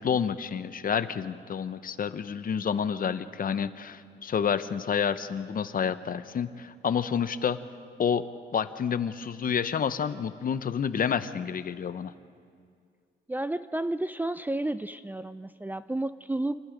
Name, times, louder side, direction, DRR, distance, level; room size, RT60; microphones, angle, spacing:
voice 1, 0.0-7.6 8.0-8.2 8.5-12.1, left 7 dB, 45° left, 12 dB, 0.9 m, -29 dB
voice 2, 13.3-16.6, right 1 dB, 10° right, 11 dB, 0.4 m, -31 dB
27.0 x 19.0 x 5.2 m, 2.2 s
cardioid pair, 90°, 20 cm